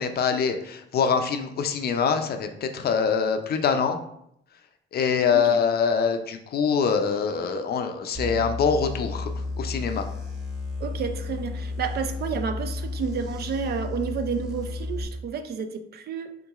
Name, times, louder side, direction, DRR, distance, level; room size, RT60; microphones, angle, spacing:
voice 1, 0.0-4.0 4.9-10.1, left 6 dB, 50° left, 7 dB, 0.4 m, -24 dB
sound 1, 8.1-15.0, left 3 dB, 5° right, 1.1 m, -33 dB
voice 2, 10.8-16.3, right 6 dB, 55° right, 8 dB, 0.4 m, -31 dB
3.8 x 2.8 x 2.3 m, 0.73 s
cardioid pair, 90°, 20 cm